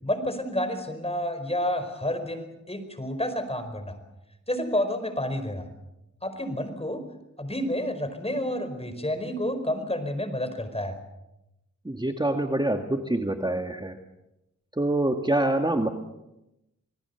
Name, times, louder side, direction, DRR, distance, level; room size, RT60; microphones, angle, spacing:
voice 1, 0.0-4.0 4.5-5.7 6.2-7.0 7.4-11.0, left 1 dB, 20° left, 8 dB, 5.0 m, -30 dB
voice 2, 11.9-14.0 14.8-15.9, right 1 dB, 15° right, 4 dB, 1.9 m, -25 dB
28.0 x 20.0 x 7.1 m, 0.92 s
wide cardioid pair, 70°, 29 cm